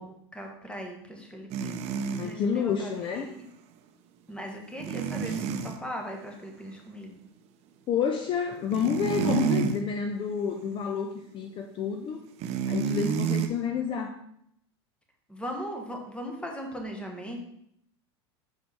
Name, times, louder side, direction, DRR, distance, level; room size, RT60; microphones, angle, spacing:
voice 1, 0.0-3.5 4.3-7.2 15.3-17.4, equal, 5° left, 2 dB, 1.2 m, -39 dB
sound 1, 1.5-2.3 4.8-5.8 8.5-9.8 10.3-10.5 12.4-13.5, right 7 dB, 50° right, 0.6 m, -29 dB
voice 2, 2.2-3.3 5.3-5.4 7.9-12.2 12.7-14.1, left 7 dB, 35° left, 5 dB, 0.5 m, -29 dB
5.6 x 5.0 x 3.4 m, 0.73 s
hypercardioid pair, 100°, 14 cm